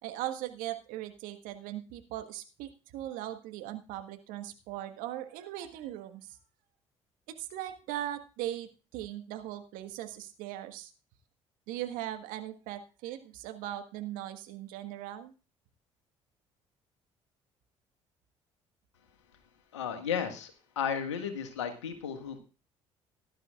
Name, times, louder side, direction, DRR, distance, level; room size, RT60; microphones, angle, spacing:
voice 1, 0.0-6.4 7.3-10.9 11.7-15.3, right 13 dB, 65° right, 7 dB, 1.6 m, -39 dB
voice 2, 19.7-22.4, left 7 dB, 80° left, 6 dB, 1.7 m, -34 dB
18.0 x 11.5 x 2.4 m, 0.34 s
hypercardioid pair, 55°, 15 cm